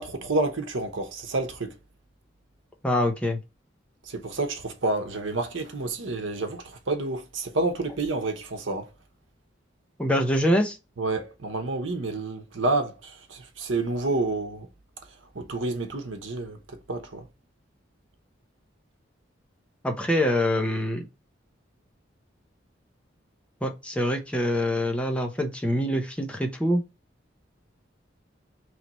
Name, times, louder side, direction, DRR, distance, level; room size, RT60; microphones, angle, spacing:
voice 1, 0.0-1.7 4.1-8.9 11.0-14.7 15.3-16.6 16.9-17.2, right 2 dB, 85° right, 0.9 m, -29 dB
voice 2, 2.8-3.4 10.0-10.8 19.8-21.1 23.6-26.8, left 1 dB, 5° left, 0.6 m, -25 dB
4.0 x 3.2 x 3.0 m
head